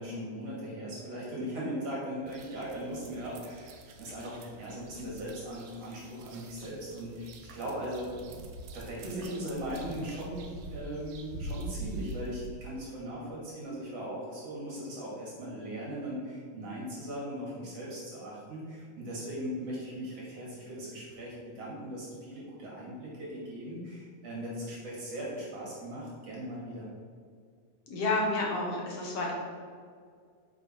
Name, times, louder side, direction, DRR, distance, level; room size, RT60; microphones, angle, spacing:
voice 1, 0.0-8.1 8.7-10.4 10.7-26.9, equal, 50° right, -5 dB, 3.0 m, -39 dB
sound 1, 2.3-12.5, right 2 dB, 90° right, 2.6 m, -44 dB
voice 2, 27.9-29.3, left 2 dB, 55° left, -1 dB, 2.0 m, -30 dB
8.3 x 6.8 x 4.6 m, 2.1 s
omnidirectional pair, 3.9 m